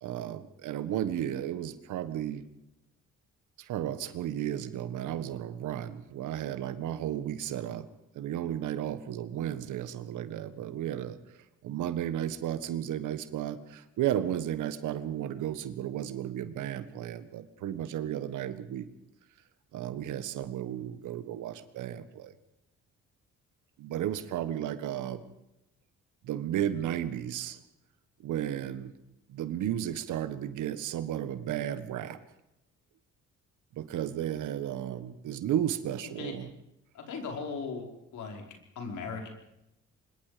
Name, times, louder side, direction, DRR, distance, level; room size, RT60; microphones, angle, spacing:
voice 1, 0.0-2.4 3.6-7.9 8.1-11.2 11.6-18.9 19.7-22.3 23.8-25.2 26.2-27.6 28.2-28.9 29.3-32.2 33.7-36.5, right 11 dB, 85° right, 12 dB, 1.6 m, -33 dB
voice 2, 36.0-36.3 36.9-37.9 38.1-39.3, left 5 dB, 75° left, 2 dB, 5.1 m, -38 dB
25.0 x 22.0 x 5.2 m, 0.87 s
cardioid pair, 90°, 30 cm